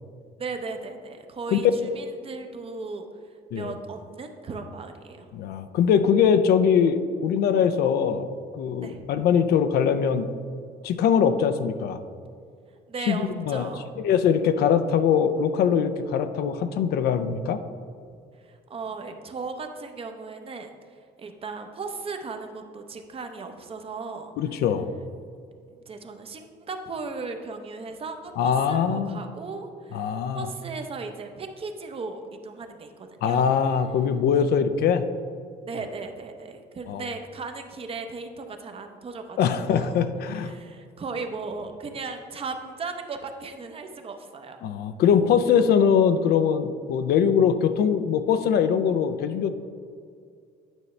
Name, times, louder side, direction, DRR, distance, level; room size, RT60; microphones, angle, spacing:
voice 1, 0.4-3.1 3.5-5.3 8.8-9.0 12.9-13.9 18.4-20.7 21.2-24.3 25.7-33.5 35.7-40.0 40.3-44.6, right 4 dB, 35° right, 6 dB, 0.7 m, -36 dB
voice 2, 5.3-8.3 8.5-10.3 10.8-12.0 13.1-13.7 14.0-17.6 24.4-24.9 28.4-29.2 29.9-30.5 33.2-35.1 36.9-37.1 39.4-40.5 44.6-49.5, left 7 dB, 70° left, 10 dB, 0.5 m, -22 dB
9.1 x 5.5 x 3.2 m, 2.2 s
cardioid pair, 110°, 17 cm